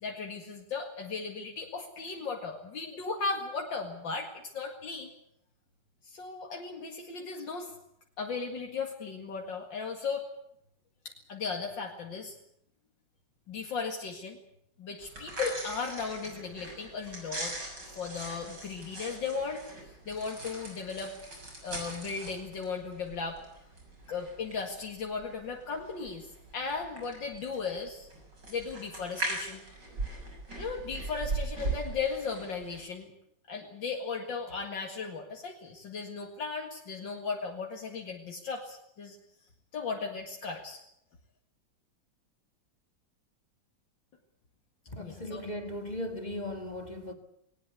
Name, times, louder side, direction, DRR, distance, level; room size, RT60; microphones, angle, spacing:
voice 1, 0.0-5.1 6.0-7.7 8.2-10.2 11.3-12.4 13.5-14.4 14.8-17.6 18.0-21.2 21.6-23.4 24.1-26.3 26.5-28.1 28.5-29.6 30.6-33.1 33.5-39.2 39.7-40.8 45.0-45.4, left 5 dB, 75° left, 2.7 m, -36 dB
sound 1, 15.0-32.8, right 2 dB, 65° right, 7.5 m, -40 dB
voice 2, 44.9-47.1, left 1 dB, 20° left, 2.0 m, -37 dB
20.5 x 19.0 x 8.3 m
omnidirectional pair, 2.0 m